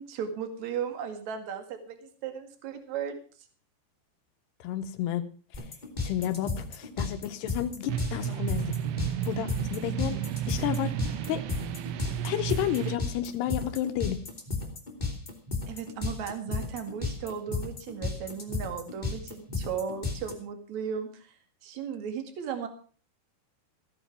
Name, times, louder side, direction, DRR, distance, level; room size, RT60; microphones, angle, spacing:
voice 1, 0.0-3.5 15.7-22.7, right 7 dB, 50° right, 7 dB, 2.5 m, -36 dB
voice 2, 4.6-5.3 5.5-5.7 6.0-8.8 9.2-10.2 10.5-11.0 11.3-11.4 12.2-14.2, left 11 dB, 75° left, 9 dB, 2.6 m, -31 dB
sound 1, 5.5-20.3, left 4 dB, 15° left, 1.5 m, -33 dB
sound 2, 7.9-13.0, right 11 dB, 75° right, 2.8 m, -32 dB
15.5 x 9.2 x 6.0 m, 0.42 s
omnidirectional pair, 5.5 m